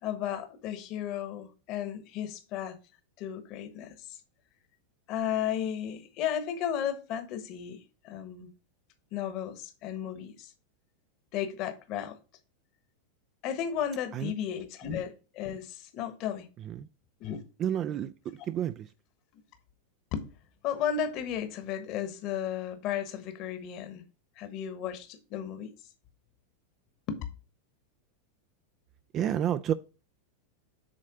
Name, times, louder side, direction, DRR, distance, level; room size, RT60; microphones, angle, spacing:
voice 1, 0.0-2.8 3.2-4.2 5.1-8.5 9.1-10.5 11.3-12.2 13.4-16.5 17.2-17.4 20.1-20.3 20.6-24.0 24.4-25.7 27.1-27.2, left 9 dB, 50° left, 1.2 m, -34 dB
voice 2, 17.6-18.9 29.1-29.7, right 10 dB, 35° right, 0.4 m, -30 dB
7.6 x 3.3 x 4.9 m
hypercardioid pair, 120°, 0 cm